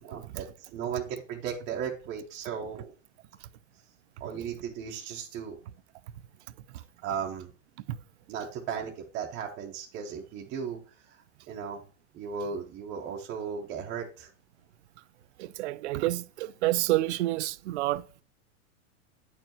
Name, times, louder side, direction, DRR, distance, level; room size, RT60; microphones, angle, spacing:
voice 1, 0.0-0.5 0.7-2.9 4.2-5.6 7.0-7.5 8.3-10.8 11.5-11.8 12.1-14.3, right 7 dB, 20° right, 0.6 m, -36 dB
voice 2, 15.4-18.2, right 16 dB, 60° right, 0.5 m, -29 dB
8.7 x 4.6 x 2.8 m
supercardioid pair, 165°, 40 cm